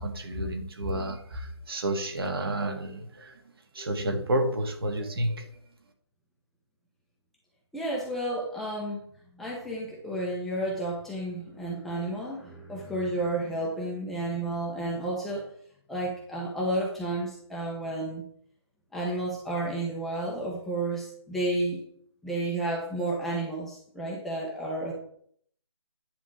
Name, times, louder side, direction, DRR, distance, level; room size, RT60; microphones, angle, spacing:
voice 1, 0.0-3.4 3.7-5.5, right 1 dB, 55° right, 3 dB, 2.0 m, -30 dB
voice 2, 7.7-9.1 9.3-15.5 15.9-18.2 18.9-21.8 22.2-24.9, right 1 dB, ahead, -5 dB, 0.7 m, -31 dB
10.0 x 3.7 x 7.1 m, 0.63 s
figure-of-eight pair, 165°, 15 cm